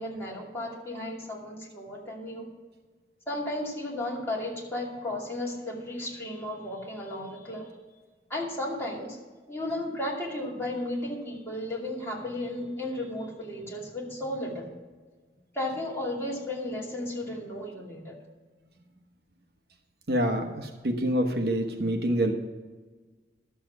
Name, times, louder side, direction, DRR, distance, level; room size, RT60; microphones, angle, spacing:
voice 1, 0.0-2.5 3.3-7.7 8.3-9.2 9.5-14.7 15.5-18.2, left 1 dB, 15° left, -4 dB, 2.6 m, -34 dB
voice 2, 20.1-22.3, right 1 dB, 60° right, 5 dB, 1.0 m, -26 dB
12.0 x 7.4 x 6.0 m, 1.3 s
head